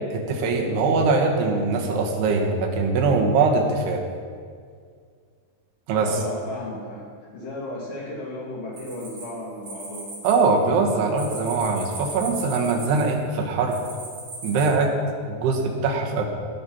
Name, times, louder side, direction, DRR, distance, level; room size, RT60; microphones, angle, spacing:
voice 1, 0.1-4.0 5.9-6.1 10.2-13.8 14.4-14.9 15.3-16.2, right 4 dB, 85° right, 2 dB, 3.3 m, -22 dB
voice 2, 5.9-10.1, left 1 dB, 60° left, -4 dB, 4.0 m, -35 dB
sound 1, 8.8-10.3 10.6-13.2 13.7-14.7, right 2 dB, 40° right, 3.9 m, -38 dB
18.0 x 6.2 x 5.7 m, 2.1 s
omnidirectional pair, 4.6 m